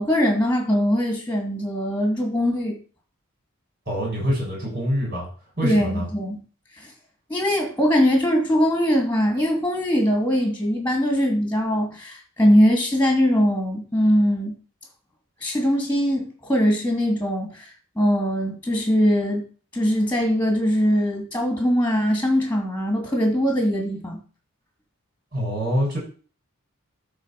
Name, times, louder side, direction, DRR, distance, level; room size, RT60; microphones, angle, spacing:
voice 1, 0.0-2.7 5.6-6.4 6.8-6.9 7.3-14.6 15.4-17.7 18.0-19.4 19.7-24.2, equal, 10° left, 2 dB, 2.6 m, -21 dB
voice 2, 3.9-5.3 5.6-6.1 25.3-26.0, equal, 45° right, -2 dB, 6.7 m, -25 dB
12.5 x 4.6 x 5.9 m, 0.38 s
head